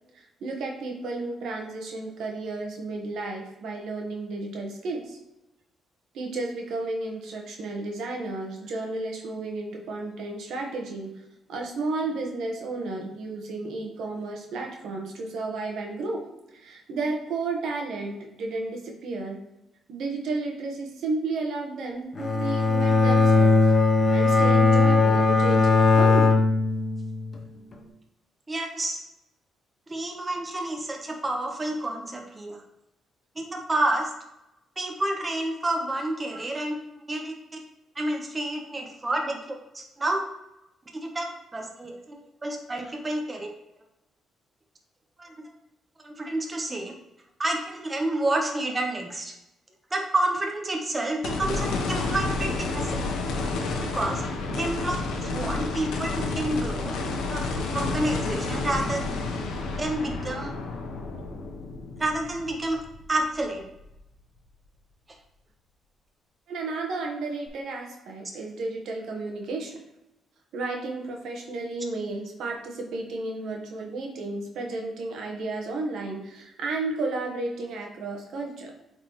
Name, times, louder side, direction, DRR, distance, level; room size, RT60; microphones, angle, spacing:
voice 1, 0.1-5.2 6.1-11.2 11.5-19.4 19.9-23.6 24.1-26.3 66.5-69.8 70.5-78.7, right 3 dB, 75° right, 1 dB, 1.4 m, -32 dB
Bowed string instrument, 22.2-27.4, left 3 dB, 40° left, 0.9 m, -19 dB
voice 2, 28.5-29.0 29.9-32.6 33.3-34.1 34.8-36.8 37.1-37.4 37.9-39.4 39.7-40.2 41.0-43.5 45.2-45.3 46.0-47.0 47.4-49.3 49.9-53.1 53.4-53.5 53.8-54.2 54.5-57.0 57.3-57.4 57.7-59.1 59.8-60.6 62.0-62.8 63.1-63.6, right 1 dB, 20° right, 1 dB, 1.1 m, -29 dB
sound 1, 51.2-63.6 64.0-64.1 67.5-67.6, left 3 dB, 85° left, 1.0 m, -30 dB
8.3 x 4.3 x 3.1 m, 0.89 s
cardioid pair, 90°, 0 cm